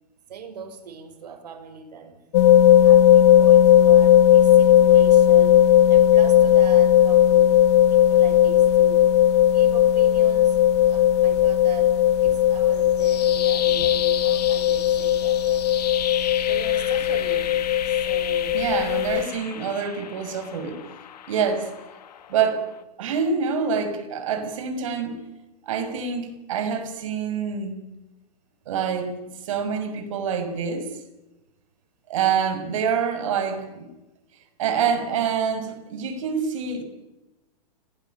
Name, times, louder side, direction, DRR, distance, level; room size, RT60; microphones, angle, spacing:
voice 1, 0.3-2.1 2.8-7.5 7.9-9.1 9.5-10.6 10.8-15.7 16.4-18.7, right 6 dB, 90° right, 7 dB, 6.3 m, -41 dB
sound 1, 2.3-19.2, left 11 dB, 45° left, 1.4 m, -17 dB
sound 2, 12.7-22.8, left 10 dB, 85° left, 2.2 m, -34 dB
voice 2, 18.5-20.8 21.3-21.7 22.3-22.7 23.0-25.2 25.7-27.8 28.7-29.1 29.4-30.9 32.1-33.9 34.6-36.8, right 6 dB, 55° right, 7 dB, 6.3 m, -26 dB
29.5 x 20.0 x 9.2 m, 1.1 s
supercardioid pair, 175°, 20 cm